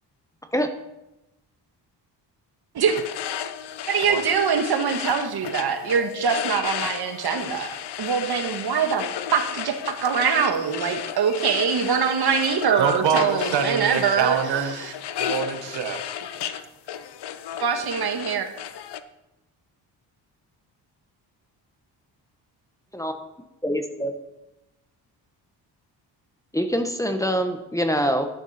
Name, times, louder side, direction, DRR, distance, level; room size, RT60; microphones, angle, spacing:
sound 1, 2.9-19.0, left 10 dB, 70° left, 0.8 m, -33 dB
voice 1, 3.9-9.0 9.3-14.4 14.8-14.9 17.6-18.5, right 6 dB, 60° right, 6 dB, 1.7 m, -23 dB
voice 2, 12.8-14.8 15.2-16.3, right 7 dB, 85° right, 8 dB, 1.3 m, -25 dB
voice 3, 23.6-24.1 26.5-28.3, equal, 5° left, 6 dB, 1.2 m, -24 dB
11.0 x 9.6 x 4.3 m, 0.97 s
cardioid pair, 75°, 42 cm